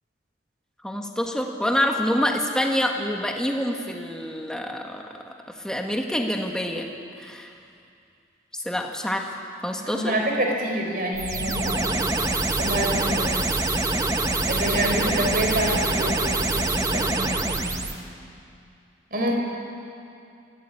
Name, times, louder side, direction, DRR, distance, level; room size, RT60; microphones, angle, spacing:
voice 1, 0.8-5.1 5.6-6.9 7.2-7.5 8.7-9.3 9.6-10.2, equal, 5° left, 2 dB, 1.6 m, -26 dB
voice 2, 9.9-11.9 12.6-13.4 14.5-17.8 19.1-19.3, right 1 dB, 50° right, 1 dB, 4.1 m, -27 dB
sound 1, 11.2-18.0, right 2 dB, 20° right, 1.1 m, -25 dB
24.0 x 16.5 x 8.7 m, 2.5 s
head